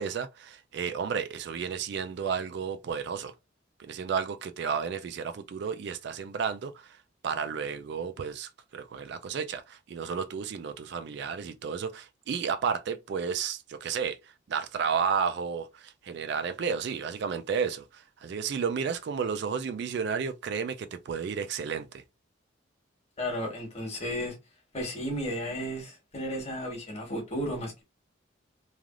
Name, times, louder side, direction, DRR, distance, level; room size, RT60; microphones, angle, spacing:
voice 1, 0.0-3.3 3.8-7.0 7.2-22.0, right 6 dB, 60° right, 0.3 m, -32 dB
voice 2, 23.2-24.4 24.7-27.8, equal, 35° left, 1.2 m, -33 dB
3.2 x 2.4 x 2.4 m
head